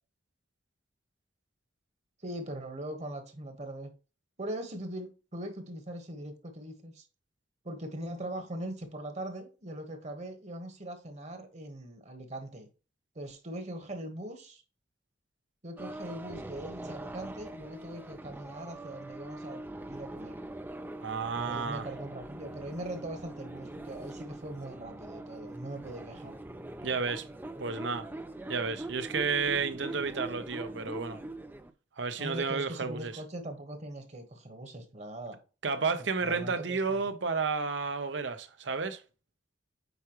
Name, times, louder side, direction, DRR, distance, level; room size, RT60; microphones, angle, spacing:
voice 1, 2.2-3.9 4.4-7.0 7.6-12.7 13.1-14.6 15.6-19.6 19.9-20.4 21.3-26.3 32.2-35.4 36.0-37.0, right 1 dB, 40° right, 1.3 m, -41 dB
sound 1, 15.8-31.7, right 2 dB, 10° right, 0.4 m, -43 dB
voice 2, 21.0-21.9 26.8-27.3 27.6-28.1 28.5-31.2 32.0-33.1 35.6-39.0, right 4 dB, 70° right, 0.8 m, -31 dB
8.3 x 4.8 x 3.0 m
head